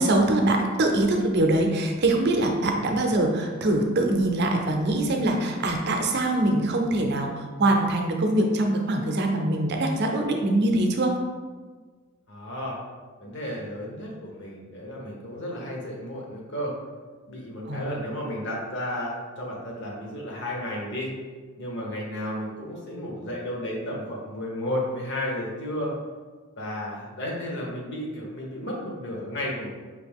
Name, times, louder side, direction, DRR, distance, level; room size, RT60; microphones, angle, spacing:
voice 1, 0.0-11.1 17.7-17.9, right 1 dB, 50° right, 3 dB, 0.6 m, -23 dB
voice 2, 2.8-3.1 12.3-12.8 13.2-16.7 17.3-21.1 21.6-25.9 26.6-29.7, left 1 dB, 55° left, -2 dB, 1.0 m, -33 dB
4.9 x 2.8 x 3.5 m, 1.4 s
head